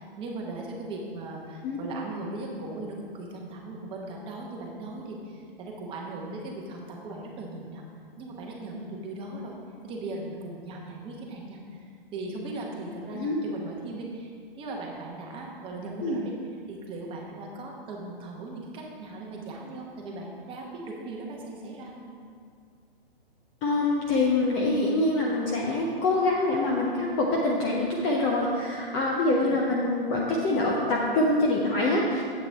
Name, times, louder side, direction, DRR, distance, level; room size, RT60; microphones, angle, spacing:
voice 1, 0.0-7.8 8.2-9.6 9.8-14.3 14.5-16.4 16.7-22.2 29.4-29.6, right 2 dB, 15° right, -1 dB, 1.1 m, -38 dB
voice 2, 23.6-32.2, left 2 dB, 20° left, -2 dB, 0.5 m, -25 dB
9.2 x 8.0 x 3.4 m, 2.1 s
hypercardioid pair, 140°, 30 cm